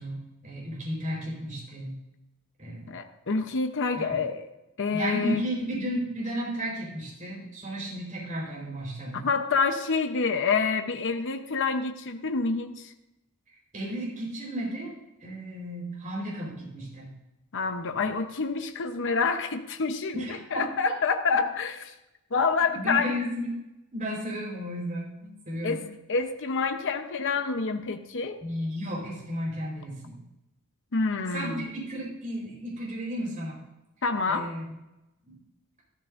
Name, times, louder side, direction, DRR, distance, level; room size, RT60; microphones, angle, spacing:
voice 1, 0.0-2.0 2.6-2.9 4.0-4.2 4.9-9.3 13.7-14.9 15.2-17.1 20.1-20.7 22.7-23.5 23.9-25.1 25.5-25.8 28.4-30.2 31.3-33.6 34.3-34.7 35.3-35.4, equal, 35° right, -4 dB, 4.3 m, -33 dB
voice 2, 2.9-4.5 4.8-5.4 9.2-12.9 17.5-21.9 22.3-23.2 25.6-28.4 30.9-31.7 34.0-34.5, left 4 dB, 60° left, 6 dB, 0.9 m, -27 dB
14.0 x 13.0 x 2.6 m, 0.95 s
head